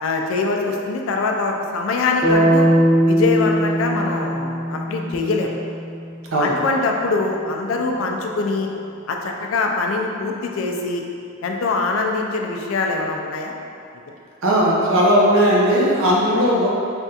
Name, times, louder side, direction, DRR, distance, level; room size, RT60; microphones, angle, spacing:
voice 1, 0.0-2.7 3.1-5.5 6.4-8.7 9.1-11.0 11.4-13.5, left 3 dB, 70° left, 2 dB, 0.3 m, -23 dB
sound 1, 2.2-6.3, equal, ahead, 0.4 m, -20 dB
voice 2, 14.4-16.7, equal, 70° right, -5 dB, 0.6 m, -17 dB
3.3 x 2.3 x 2.7 m, 2.5 s
head